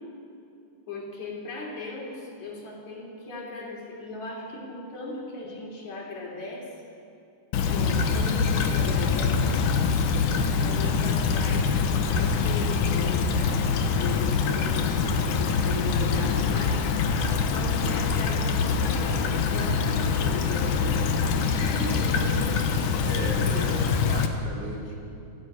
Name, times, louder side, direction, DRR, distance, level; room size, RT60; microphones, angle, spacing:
voice 1, 0.9-6.7 7.7-9.5 10.6-11.7 12.1-13.7 13.9-14.9 15.2-16.8 17.5-21.0 21.6-22.5, left 3 dB, 65° left, -1 dB, 4.4 m, -37 dB
Stream / Trickle dribble, 7.5-24.3, left 5 dB, 85° left, 2.6 m, -24 dB
voice 2, 23.0-25.0, right 1 dB, 40° right, -2 dB, 2.8 m, -36 dB
28.0 x 9.5 x 9.7 m, 2.6 s
omnidirectional pair, 3.6 m